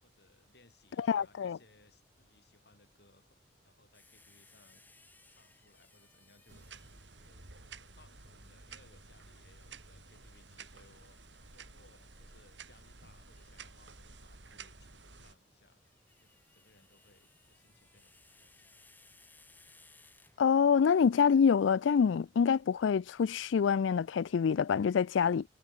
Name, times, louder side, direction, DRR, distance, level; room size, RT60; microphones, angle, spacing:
voice 1, 0.0-3.4 3.6-4.9 5.3-6.6 7.2-11.2 11.5-15.8 16.2-18.9, left 2 dB, 60° left, 6.9 m, -65 dB
voice 2, 1.0-1.6 20.4-25.4, left 6 dB, 90° left, 0.4 m, -26 dB
sound 1, 3.9-7.2 10.1-11.6 13.3-13.6 15.6-20.8, left 3 dB, 10° left, 4.4 m, -63 dB
sound 2, 6.5-15.4, right 4 dB, 75° right, 4.2 m, -53 dB
head